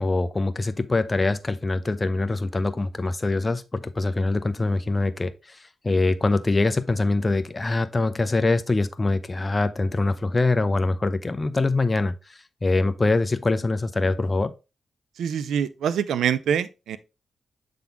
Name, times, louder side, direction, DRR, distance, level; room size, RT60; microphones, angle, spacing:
voice 1, 0.0-14.5, left 2 dB, 30° left, 0.6 m, -24 dB
voice 2, 15.2-17.0, right 8 dB, 90° right, 0.4 m, -25 dB
7.0 x 3.8 x 3.5 m
cardioid pair, 55°, 0 cm